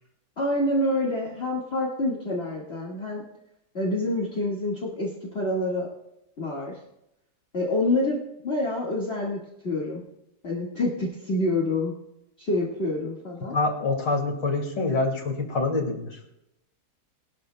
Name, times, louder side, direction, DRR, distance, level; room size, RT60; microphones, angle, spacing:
voice 1, 0.4-3.2 3.7-5.9 6.4-6.8 7.5-10.0 10.4-11.9 12.4-13.6, left 1 dB, 35° left, -4 dB, 2.1 m, -27 dB
voice 2, 13.5-16.2, left 3 dB, 80° left, 1 dB, 2.9 m, -26 dB
21.5 x 13.0 x 2.2 m, 0.85 s
omnidirectional pair, 1.9 m